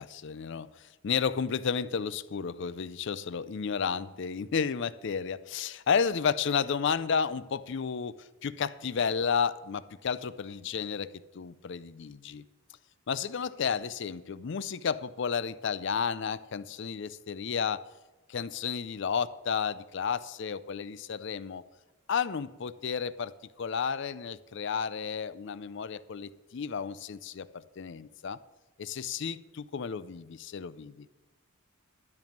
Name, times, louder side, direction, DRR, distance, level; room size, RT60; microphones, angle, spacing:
voice 1, 0.0-12.4 13.1-17.9 18.3-21.6 22.1-28.4 28.8-31.1, left 6 dB, 55° left, 0.4 m, -32 dB
12.0 x 5.3 x 7.3 m
head